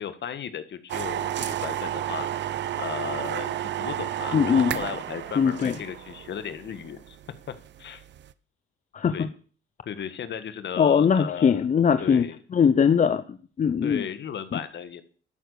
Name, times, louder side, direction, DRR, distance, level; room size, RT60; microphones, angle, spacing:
voice 1, 0.0-2.5 2.7-7.2 7.8-8.0 9.1-9.3 9.8-11.7 12.0-12.4 13.8-15.0, left 8 dB, 60° left, 11 dB, 1.6 m, -35 dB
sound 1, 0.9-8.3, right 12 dB, 65° right, 0.7 m, -32 dB
voice 2, 4.3-4.8 5.4-5.8 8.9-9.3 10.8-12.3 12.5-14.0 14.5-14.6, left 7 dB, 40° left, 12 dB, 0.7 m, -21 dB
13.0 x 9.1 x 6.8 m, 0.43 s
cardioid pair, 90°, 20 cm